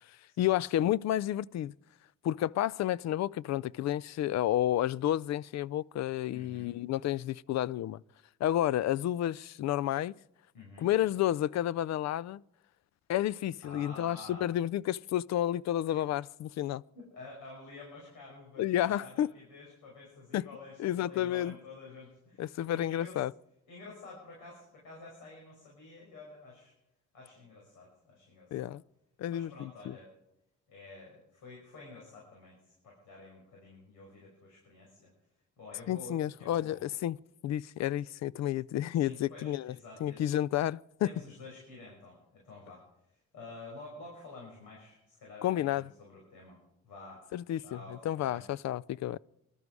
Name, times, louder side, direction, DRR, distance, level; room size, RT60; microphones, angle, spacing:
voice 1, 0.4-1.7 2.2-8.0 8.4-10.1 10.8-12.4 13.1-16.8 18.6-19.3 20.3-20.5 20.8-21.5 22.4-23.3 28.5-28.8 29.2-29.9 35.9-37.2 37.4-39.7 40.0-40.8 45.4-45.9 47.3-47.8 48.0-49.2, left 12 dB, 60° left, 0.4 m, -31 dB
voice 2, 6.3-6.8 10.5-10.9 13.6-14.5 15.9-16.0 16.9-23.2 23.7-26.7 27.1-28.7 29.3-30.1 30.7-35.1 35.6-36.9 38.9-40.2 41.0-42.8 43.1-46.6 46.8-47.2 47.5-48.4, left 3 dB, 85° left, 5.8 m, -50 dB
21.5 x 12.5 x 4.8 m
cardioid pair, 90°, 30 cm